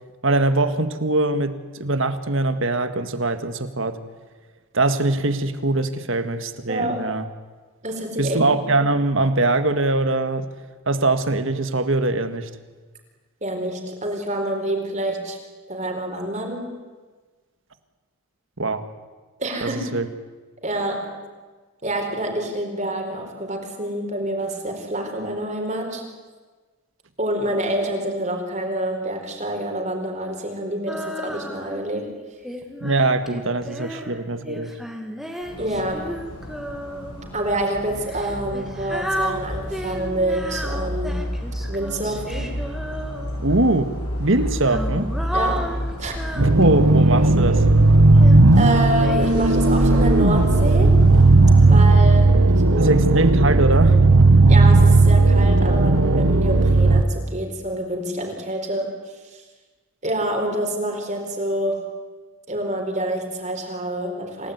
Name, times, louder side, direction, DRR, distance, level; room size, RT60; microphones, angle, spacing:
voice 1, 0.2-4.0 4.7-7.2 8.2-10.5 10.9-12.5 18.6-18.8 19.6-20.1 32.8-34.7 43.4-43.9 44.2-45.1 46.4-47.6 52.8-54.0, right 2 dB, 60° right, 10 dB, 1.9 m, -22 dB
voice 2, 6.7-7.0 7.8-8.4 13.4-15.4 15.7-16.8 19.4-19.9 20.6-21.2 21.8-26.1 27.2-32.1 33.9-34.0 35.6-36.1 37.3-41.3 41.7-42.6 45.3-46.2 48.6-51.0 51.7-53.0 54.5-59.4 60.0-61.8 62.5-64.5, right 1 dB, 30° right, 2 dB, 4.5 m, -27 dB
Female singing, 30.9-31.9 32.4-37.3 38.0-43.6 44.4-47.5 48.2-49.3, equal, ahead, 2.2 m, -33 dB
sound 1, 35.4-51.8, equal, 85° left, 7.7 m, -29 dB
sound 2, 46.4-57.0, right 2 dB, 85° right, 1.3 m, -15 dB
28.0 x 18.0 x 9.6 m, 1.4 s
head